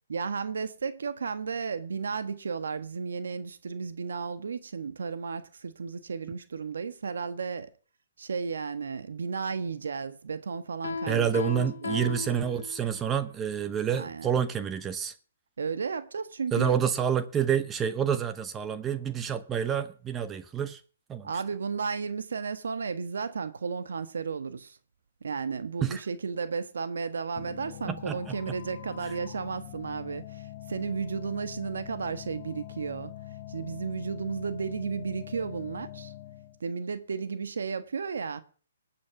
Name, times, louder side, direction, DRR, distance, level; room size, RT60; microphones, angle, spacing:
voice 1, 0.1-7.7 8.2-11.3 11.8-12.1 14.0-14.3 15.6-16.8 21.2-24.8 25.2-33.1 33.5-36.1 36.6-38.4, right 5 dB, 75° right, 1.4 m, -33 dB
Piano, 10.8-13.1, left 4 dB, 80° left, 1.0 m, -36 dB
voice 2, 11.1-15.1 16.5-20.8 21.1-21.3 25.8-26.0 27.9-28.2, right 8 dB, 15° right, 0.8 m, -28 dB
sound 1, 27.4-36.6, left 13 dB, 40° left, 1.1 m, -43 dB
18.5 x 8.6 x 6.0 m
hypercardioid pair, 145°, 0 cm